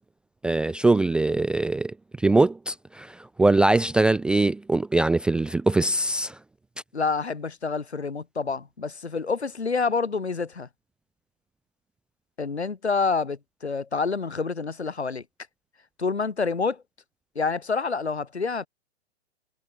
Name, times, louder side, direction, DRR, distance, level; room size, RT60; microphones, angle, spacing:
voice 1, 0.4-1.9 2.2-3.1 3.4-6.3, right 2 dB, 5° right, 0.5 m, -22 dB
voice 2, 6.9-10.7 12.4-15.2 16.0-16.8 17.3-18.7, left 4 dB, 75° left, 2.9 m, -27 dB
figure-of-eight pair, 115°, 33 cm